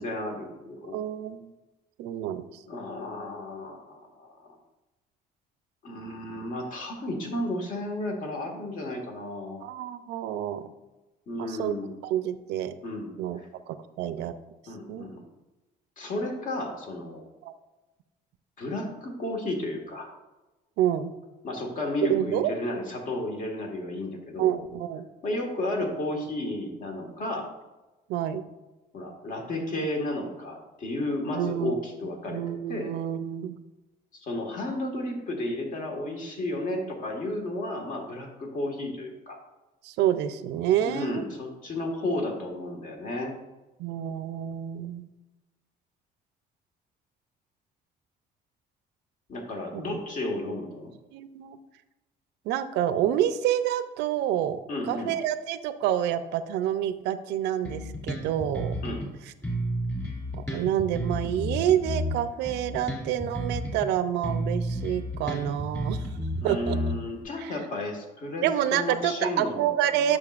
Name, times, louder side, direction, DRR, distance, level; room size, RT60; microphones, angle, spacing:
voice 1, 0.0-1.0 2.6-4.5 5.8-9.6 11.3-11.9 12.8-13.1 13.4-13.5 14.7-15.3 16.0-17.2 18.6-20.1 21.4-24.6 25.2-27.5 28.9-32.9 34.2-39.4 40.8-43.3 49.3-50.9 54.7-55.1 58.8-59.1 66.4-68.5 68.7-70.2, left 1 dB, 50° left, 2 dB, 1.6 m, -33 dB
voice 2, 0.9-1.5 2.0-2.5 9.6-10.7 11.4-11.8 12.0-12.7 13.2-13.4 13.7-14.3 14.9-15.1 17.4-17.5 20.8-21.1 22.1-22.5 24.4-25.0 28.1-28.4 31.3-31.7 32.3-33.6 39.8-41.3 43.8-45.1 49.7-50.0 51.1-51.6 52.5-54.6 54.9-58.8 60.5-66.0 66.4-66.8 67.4-67.5 68.4-70.2, right 11 dB, 85° right, 12 dB, 0.5 m, -28 dB
Bass guitar, 57.6-59.1 59.4-63.9 64.2-67.2, equal, 15° left, 2.4 m, -32 dB
8.6 x 6.3 x 2.4 m, 1.1 s
cardioid pair, 110°, 17 cm